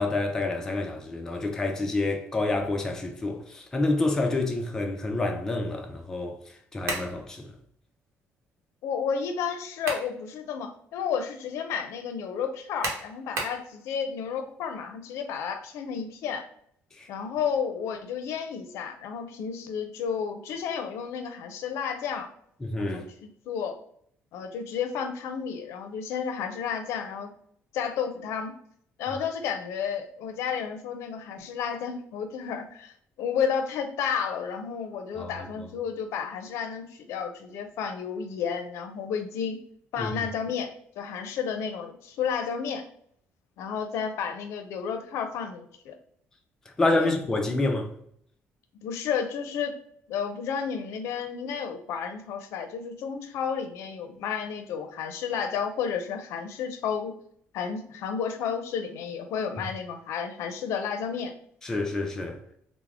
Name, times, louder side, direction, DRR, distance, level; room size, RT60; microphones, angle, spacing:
voice 1, 0.0-6.4 6.7-7.5 17.0-17.1 22.6-23.1 35.2-35.3 35.6-35.7 40.0-40.2 46.8-47.9 61.6-62.4, left 2 dB, 10° left, 0.4 m, -28 dB
sound 1, 6.8-7.2 9.5-10.1 10.6-10.7 12.8-13.6, right 3 dB, 85° right, 0.9 m, -32 dB
voice 2, 8.8-16.5 17.1-22.3 22.8-23.8 24.3-27.3 27.7-28.5 29.0-39.6 39.9-42.8 43.6-46.0 46.9-47.1 48.8-49.8 50.1-57.1 57.5-61.3, left 7 dB, 80° left, 0.5 m, -32 dB
3.5 x 2.0 x 3.4 m
cardioid pair, 175°, 5 cm